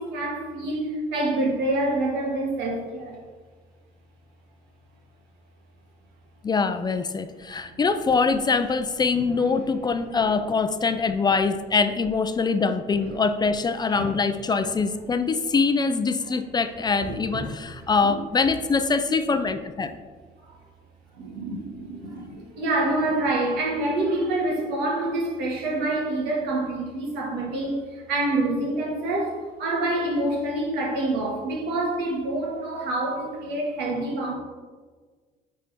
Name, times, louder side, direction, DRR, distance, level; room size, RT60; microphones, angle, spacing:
voice 1, 0.0-3.2 9.1-9.5 13.9-14.1 17.0-17.4 18.0-18.1 20.5-20.6 21.1-34.3, right 2 dB, 90° right, -2 dB, 2.0 m, -27 dB
voice 2, 6.4-19.9 21.5-21.6 21.9-22.3, left 4 dB, 25° left, 9 dB, 0.4 m, -24 dB
9.3 x 4.3 x 3.6 m, 1.5 s
cardioid pair, 110°, 17 cm